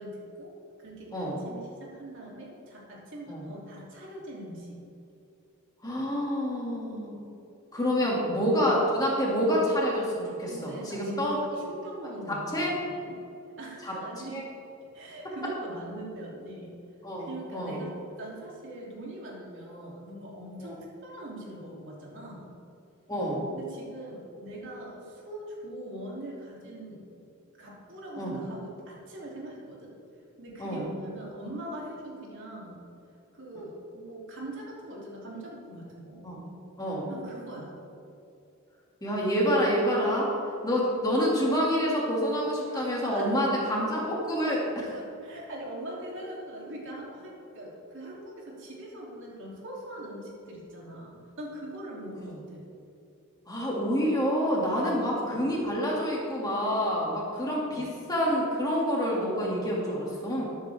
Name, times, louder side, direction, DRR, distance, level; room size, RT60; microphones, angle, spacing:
voice 1, 0.0-4.8 8.0-8.2 10.5-13.1 13.6-14.4 14.9-16.7 17.2-22.5 23.4-27.0 27.6-29.9 30.4-32.8 33.3-36.4 37.1-37.7 42.7-43.5 44.9-52.6 54.8-55.4 56.4-56.7 57.4-57.8, right 1 dB, 60° right, -4 dB, 3.3 m, -42 dB
voice 2, 5.8-7.2 7.7-11.6 12.3-12.7 13.8-14.0 14.3-14.4 17.0-17.3 17.5-17.8 20.6-20.7 23.1-23.4 28.2-28.4 30.6-30.8 36.2-36.4 36.8-37.1 39.0-40.3 40.6-44.9 52.2-52.3 53.5-60.5, equal, 20° left, -4 dB, 2.6 m, -27 dB
13.0 x 12.5 x 3.7 m, 2.7 s
head